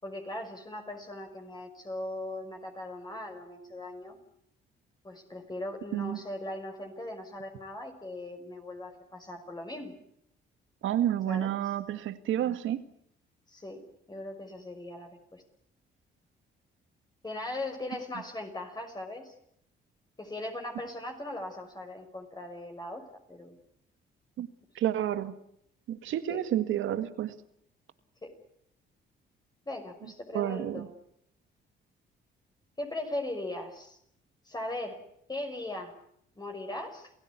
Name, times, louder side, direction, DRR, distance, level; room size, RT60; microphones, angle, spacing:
voice 1, 0.0-4.2 5.0-9.9 11.3-11.7 13.5-13.8 14.1-15.4 17.2-19.3 20.2-23.0 23.3-23.6 26.3-26.4 28.2-28.3 29.7-30.9 32.8-34.0 34.4-35.0 35.3-35.9 36.4-37.1, left 1 dB, 20° left, 6.0 m, -39 dB
voice 2, 10.8-12.8 24.4-24.5 24.8-25.3 25.9-27.3 30.3-30.9, right 11 dB, 80° right, 2.0 m, -30 dB
28.5 x 16.5 x 9.7 m
cardioid pair, 90°, 20 cm